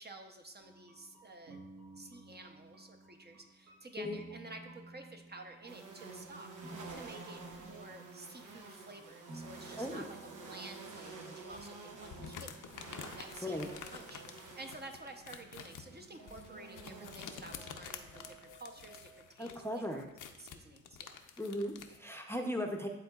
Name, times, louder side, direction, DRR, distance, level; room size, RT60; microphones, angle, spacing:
voice 1, 0.0-1.6 2.0-6.5 6.9-13.6 13.9-21.2, right 2 dB, 35° right, 3 dB, 0.7 m, -51 dB
sound 1, 0.6-13.7 14.0-14.1 15.5-15.6 15.9-19.2, right 2 dB, 65° right, 1.4 m, -55 dB
sound 2, 5.7-18.4, right 3 dB, 85° right, 0.8 m, -50 dB
sound 3, 11.5-22.0, left 7 dB, 85° left, 0.6 m, -50 dB
voice 2, 13.4-13.7 19.4-20.0 21.4-22.9, left 1 dB, 10° left, 3 dB, 0.6 m, -37 dB
11.0 x 3.7 x 2.3 m, 0.94 s
cardioid pair, 70°, 30 cm